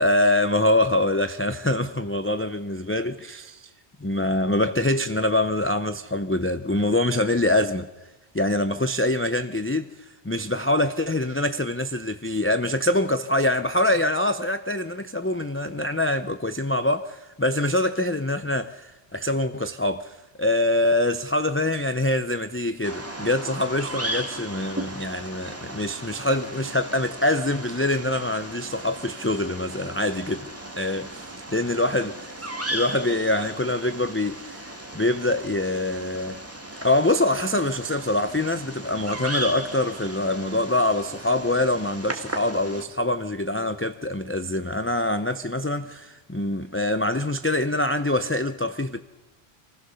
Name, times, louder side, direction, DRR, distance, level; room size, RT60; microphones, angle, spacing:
voice 1, 0.0-3.7 4.0-7.9 8.3-9.9 10.2-30.5 30.8-31.1 31.5-32.3 32.7-36.4 36.8-49.0, left 1 dB, 15° left, 0.6 m, -24 dB
Bird vocalization bird call bird song, 22.8-42.8, right 1 dB, 15° right, 1.8 m, -36 dB
26.5 x 15.5 x 6.9 m
omnidirectional pair, 1.1 m